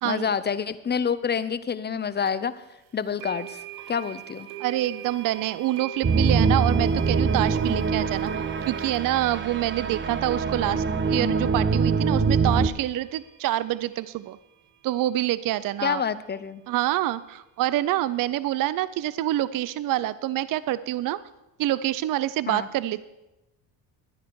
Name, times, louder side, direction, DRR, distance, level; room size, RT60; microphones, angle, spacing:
voice 1, 0.0-2.5 2.9-4.5 15.8-16.6 22.5-22.7, left 7 dB, 20° left, 14 dB, 0.6 m, -28 dB
sound 1, 2.3-2.4 3.2-14.2, right 13 dB, 90° right, 1.0 m, -42 dB
voice 2, 4.6-14.4 14.8-16.0 16.7-21.2 21.6-23.0, right 14 dB, 45° right, 17 dB, 0.5 m, -26 dB
sound 2, 6.0-12.7, right 4 dB, 25° right, 0.9 m, -24 dB
12.5 x 9.7 x 4.7 m, 0.96 s
supercardioid pair, 85°, 48 cm